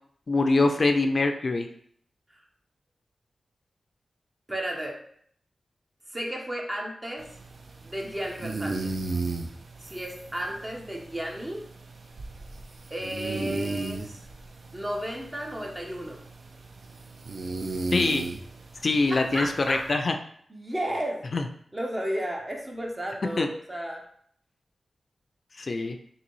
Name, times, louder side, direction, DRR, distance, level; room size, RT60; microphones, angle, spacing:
voice 1, 0.3-1.7 17.9-18.2 18.8-20.2 21.3-21.4 23.4-23.5 25.6-26.0, left 3 dB, 60° left, 6 dB, 0.4 m, -24 dB
voice 2, 4.5-5.0 6.1-7.3 7.8-9.0 9.8-11.7 12.9-14.2 14.7-16.2 19.1-19.9 20.5-21.3 21.7-24.0, right 1 dB, 25° right, 0 dB, 0.7 m, -33 dB
sound 1, 7.2-20.0, right 3 dB, 65° right, 0.4 m, -36 dB
3.8 x 2.7 x 3.1 m, 0.64 s
cardioid pair, 45°, 0 cm